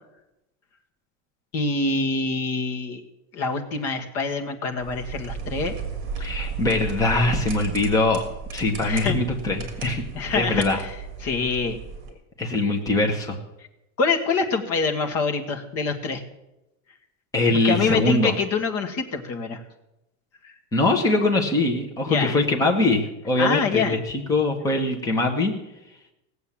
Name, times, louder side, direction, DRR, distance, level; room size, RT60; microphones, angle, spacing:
voice 1, 1.5-3.0 3.3-5.7 8.8-9.2 10.1-11.8 14.0-16.2 17.6-19.6 20.4-20.5 22.1-22.4 23.4-24.0, left 4 dB, 35° left, 4 dB, 1.6 m, -25 dB
sound 1, 4.8-12.1, right 5 dB, 30° right, 2.9 m, -34 dB
voice 2, 6.2-8.2 8.5-10.0 10.3-10.8 12.4-13.4 17.3-18.3 20.7-25.5, left 2 dB, 10° left, 1 dB, 1.2 m, -22 dB
17.5 x 8.0 x 7.3 m, 0.92 s
supercardioid pair, 165°, 41 cm